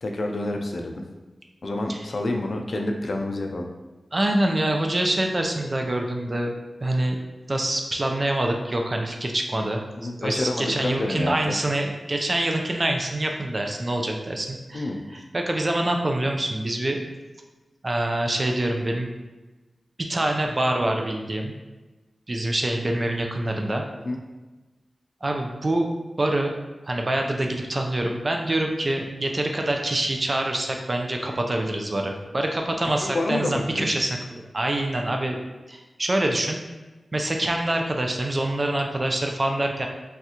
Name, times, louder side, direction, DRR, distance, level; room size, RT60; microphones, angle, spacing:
voice 1, 0.0-1.0 1.6-3.7 10.0-11.4 14.7-15.0 24.0-24.2 33.0-33.9, left 2 dB, 65° left, 2 dB, 0.4 m, -28 dB
voice 2, 4.1-6.5 6.8-7.2 7.5-17.0 17.8-19.1 20.0-21.5 22.3-23.8 25.2-25.9 26.2-26.5 26.9-35.4 35.7-36.6 37.1-39.9, right 1 dB, 40° right, 2 dB, 0.5 m, -25 dB
3.3 x 2.3 x 2.8 m, 1.2 s
cardioid pair, 40°, 0 cm